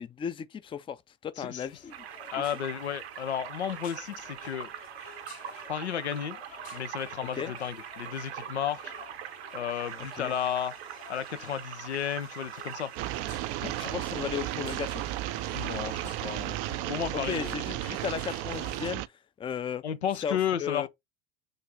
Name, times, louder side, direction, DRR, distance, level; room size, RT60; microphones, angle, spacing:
voice 1, 0.0-2.0 7.4-7.5 10.1-10.3 13.8-15.0 17.2-19.0 19.4-19.8 20.2-20.9, left 7 dB, 15° left, 0.4 m, -35 dB
sound 1, 1.6-18.9, left 7 dB, 70° left, 1.6 m, -52 dB
sound 2, 1.9-16.6, right 10 dB, 70° right, 0.9 m, -43 dB
voice 2, 2.3-4.7 5.7-6.4 6.7-8.9 9.5-10.8 11.1-12.9 13.6-13.7 15.5-17.6 19.8-20.9, left 9 dB, 90° left, 0.5 m, -33 dB
sound 3, 13.0-19.1, right 16 dB, 50° right, 0.4 m, -34 dB
6.5 x 2.4 x 3.3 m
hypercardioid pair, 80°, 32 cm